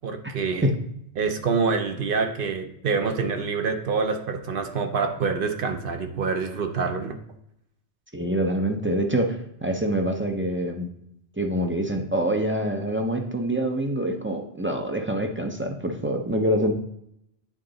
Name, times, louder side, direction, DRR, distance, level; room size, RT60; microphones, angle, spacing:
voice 1, 0.0-0.7 1.2-7.2, right 5 dB, 60° right, 6 dB, 0.8 m, -26 dB
voice 2, 8.1-10.9 11.4-16.7, right 1 dB, 15° right, 3 dB, 0.4 m, -25 dB
8.5 x 3.8 x 3.9 m, 0.74 s
omnidirectional pair, 1.1 m